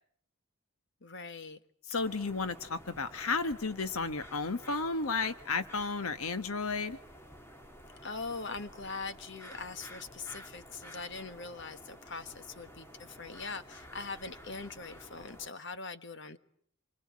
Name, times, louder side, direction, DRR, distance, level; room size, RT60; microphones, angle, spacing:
voice 1, 1.0-1.6 8.0-16.4, left 4 dB, 55° left, 11 dB, 1.5 m, -42 dB
voice 2, 1.9-7.0, left 4 dB, 80° left, 11 dB, 1.2 m, -33 dB
sound 1, 2.0-15.5, equal, 10° left, 1.8 m, -52 dB
27.0 x 24.5 x 8.5 m, 0.64 s
head